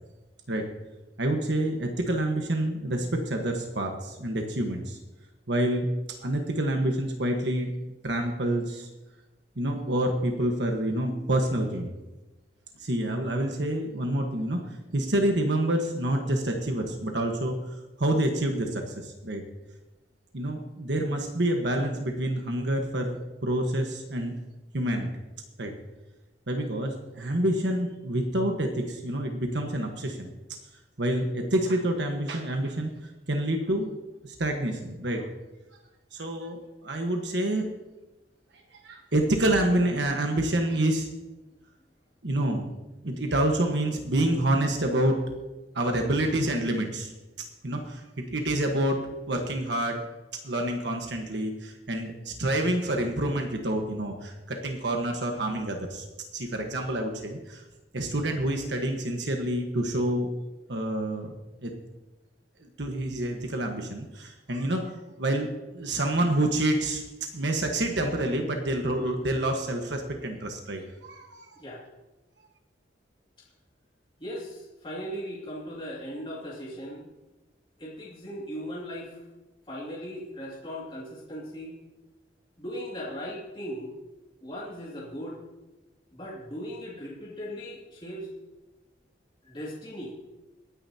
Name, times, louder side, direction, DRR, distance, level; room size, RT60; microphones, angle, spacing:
voice 1, 1.2-5.0 5.5-7.7 8.0-8.9 9.6-11.9 12.8-17.6 18.0-19.4 20.3-24.3 24.7-25.1 25.6-25.7 26.5-30.3 31.0-32.9 33.3-33.9 34.2-35.3 36.1-37.7 38.8-41.2 42.2-42.7 43.0-45.4 45.7-47.1 47.6-50.0 50.4-56.0 56.3-57.6 57.9-60.3 60.7-61.3 61.6-61.7 62.8-64.9 65.2-67.1 67.3-71.5, right 1 dB, 65° right, 3 dB, 1.4 m, -28 dB
voice 2, 74.2-77.1 77.8-79.2 79.7-81.8 82.6-83.9 84.4-85.4 86.1-88.3 89.4-90.1, equal, 25° left, -5 dB, 2.4 m, -38 dB
22.5 x 9.8 x 2.9 m, 1.1 s
head